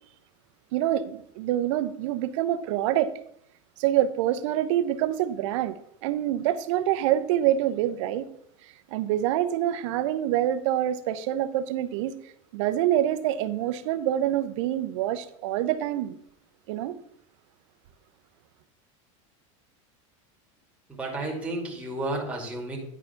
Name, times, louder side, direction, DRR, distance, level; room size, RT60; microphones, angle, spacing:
voice 1, 0.7-3.1 3.8-8.3 8.9-12.1 12.5-16.2 16.7-16.9, right 12 dB, 70° right, 0.8 m, -26 dB
voice 2, 20.9-22.8, right 2 dB, 5° right, 2.3 m, -32 dB
10.0 x 4.9 x 5.7 m
supercardioid pair, 135°, 16 cm